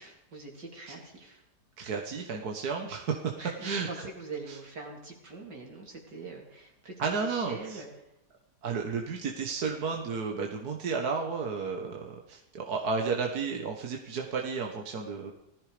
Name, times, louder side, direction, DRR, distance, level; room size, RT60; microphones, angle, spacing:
voice 1, 0.0-1.4 3.4-7.9, right 3 dB, 80° right, 0 dB, 4.1 m, -43 dB
voice 2, 1.8-3.3 3.6-3.9 4.5-4.6 7.0-7.8 8.6-15.3, right 5 dB, 65° right, 1 dB, 1.9 m, -32 dB
19.0 x 14.0 x 5.2 m, 0.86 s
omnidirectional pair, 1.8 m